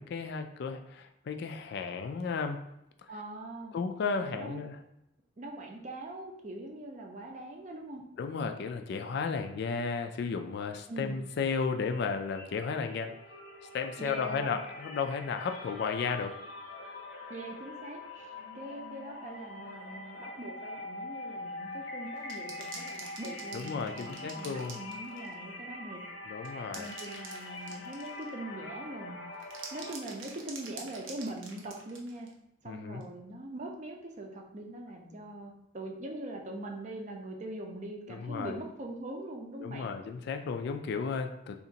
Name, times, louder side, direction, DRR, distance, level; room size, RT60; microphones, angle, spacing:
voice 1, 0.0-2.6 3.7-4.8 8.2-13.1 13.7-16.3 23.5-24.8 26.3-26.9 32.7-33.0 38.1-38.6 39.6-41.6, left 5 dB, 60° left, 6 dB, 0.3 m, -34 dB
voice 2, 3.1-3.7 4.2-4.7 5.4-8.0 10.9-11.2 14.0-14.6 17.3-18.3 18.5-26.0 26.7-29.2 29.7-32.3 32.6-39.9, right 1 dB, 40° right, 2 dB, 0.5 m, -42 dB
sound 1, 11.3-11.6 11.8-29.9, left 2 dB, 80° left, 0.8 m, -44 dB
sound 2, 22.2-25.3 26.4-28.3 29.4-32.3 33.0-33.1, right 4 dB, 80° right, 0.7 m, -46 dB
2.8 x 2.5 x 3.9 m, 0.82 s
head